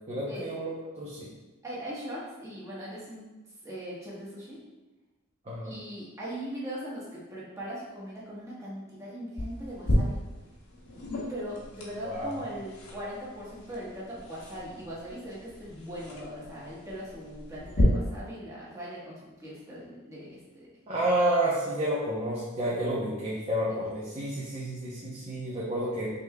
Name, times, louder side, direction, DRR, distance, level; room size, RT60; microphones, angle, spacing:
voice 1, 0.1-0.7 1.0-1.3 5.5-5.7 12.0-12.3 20.9-26.1, right 1 dB, 30° right, -6 dB, 0.6 m, -30 dB
voice 2, 1.6-3.2 3.6-4.6 5.6-10.2 11.3-20.7 23.7-23.8, equal, 15° right, -8 dB, 1.2 m, -40 dB
sound 1, 9.4-17.8, left 1 dB, 85° left, 1.0 m, -35 dB
5.3 x 3.3 x 2.2 m, 1.1 s
head